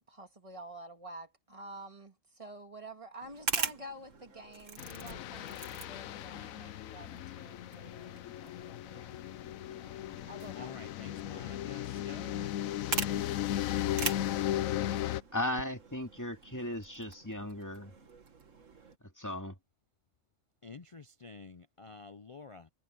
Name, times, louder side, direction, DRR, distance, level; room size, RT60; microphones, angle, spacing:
voice 1, 0.1-9.2 9.8-10.8, right 2 dB, 25° right, 2.1 m, -49 dB
sound 1, 3.2-19.0, right 5 dB, 70° right, 2.2 m, -43 dB
sound 2, 4.8-15.2, left 12 dB, 80° left, 1.0 m, -36 dB
voice 2, 10.6-12.5 20.6-22.7, left 4 dB, 55° left, 0.3 m, -49 dB
voice 3, 15.3-17.9 19.2-19.5, left 1 dB, 15° left, 2.6 m, -36 dB
omnidirectional pair, 1.4 m